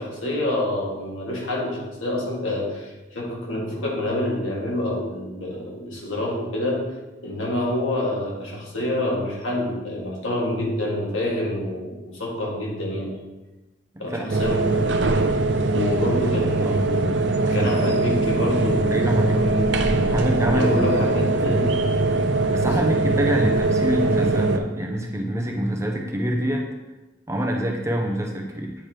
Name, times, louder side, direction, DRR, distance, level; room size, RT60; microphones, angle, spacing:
voice 1, 0.0-6.8 7.2-13.1 14.0-15.0 15.7-17.2 17.5-20.1 20.5-21.8 22.7-22.8 24.7-24.8, left 1 dB, 85° left, -3 dB, 1.9 m, -27 dB
voice 2, 13.9-14.6 16.0-16.8 17.4-17.7 18.9-19.4 20.0-21.8 22.5-26.6 27.3-28.7, equal, 15° right, 1 dB, 0.6 m, -27 dB
sound 1, 14.3-24.6, right 2 dB, 60° right, 0.5 m, -21 dB
8.8 x 3.0 x 4.9 m, 1.1 s
head